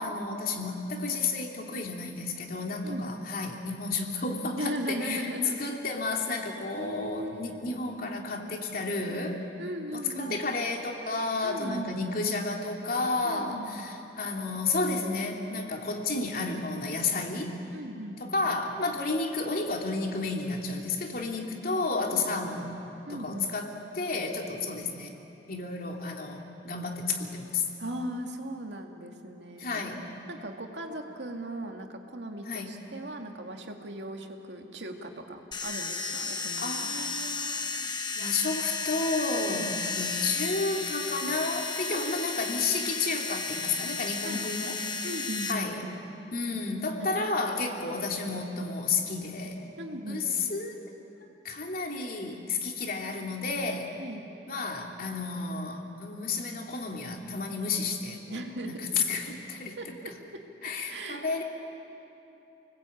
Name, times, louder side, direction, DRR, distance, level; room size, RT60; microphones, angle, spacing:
voice 1, 0.0-5.3 5.6-9.4 9.9-17.6 18.2-22.7 23.1-25.1 25.5-27.7 29.6-30.0 32.5-32.7 36.6-37.8 38.1-44.8 45.5-45.8 46.3-49.7 50.0-50.2 50.5-50.9 51.4-53.9 54.5-59.8 60.6-61.4, left 3 dB, 55° left, 1 dB, 2.9 m, -31 dB
voice 2, 4.6-5.6 6.4-6.5 6.8-7.6 9.1-10.4 11.4-11.9 13.2-13.9 17.7-18.5 22.1-22.2 23.1-23.5 27.8-29.8 30.3-37.0 39.4-39.8 41.9-42.6 44.2-44.5 45.0-46.0 47.0-47.2 49.8-50.3 54.0-54.2 58.3-58.7 59.8-60.4 60.9-61.3, right 1 dB, 90° right, 3 dB, 2.3 m, -38 dB
sound 1, 35.5-45.5, left 4 dB, 25° left, 1.4 m, -33 dB
29.0 x 20.0 x 8.7 m, 2.9 s
head